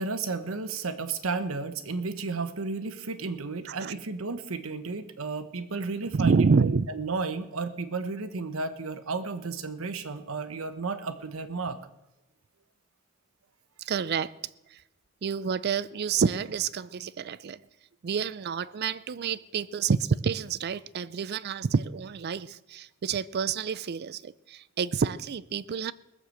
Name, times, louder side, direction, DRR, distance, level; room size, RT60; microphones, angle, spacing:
voice 1, 0.0-11.9, right 4 dB, 90° right, 1.0 m, -33 dB
voice 2, 6.1-6.9 13.8-14.3 14.7-14.8 15.2-17.6 18.0-25.9, right 5 dB, 50° right, 0.4 m, -28 dB
20.0 x 6.8 x 7.6 m
head